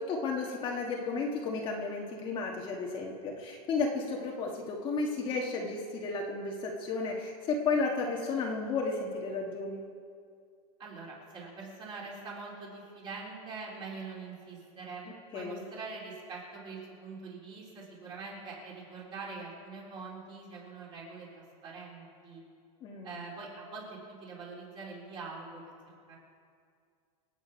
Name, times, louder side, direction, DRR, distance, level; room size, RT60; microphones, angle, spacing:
voice 1, 0.0-9.8 15.3-15.6 22.8-23.2, left 4 dB, 25° left, -1 dB, 1.6 m, -33 dB
voice 2, 10.8-22.4 23.0-26.2, right 4 dB, 25° right, -3 dB, 3.9 m, -44 dB
26.5 x 8.9 x 5.2 m, 2.2 s
supercardioid pair, 155°, 20 cm